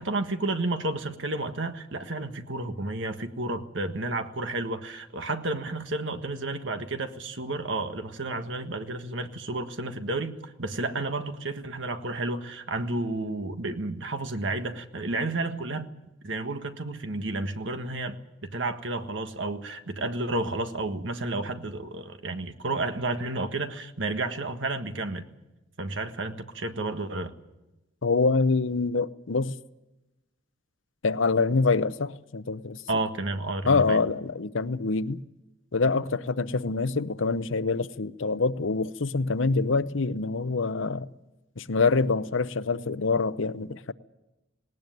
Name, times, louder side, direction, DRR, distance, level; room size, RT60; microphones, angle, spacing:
voice 1, 0.0-15.9 16.2-25.3 25.8-27.3 32.9-34.0, right 2 dB, 65° right, 1.6 m, -31 dB
voice 2, 28.0-29.6 31.0-32.8 33.6-35.2 35.7-41.1 41.6-43.9, left 4 dB, 75° left, 0.8 m, -25 dB
19.0 x 18.5 x 9.3 m
head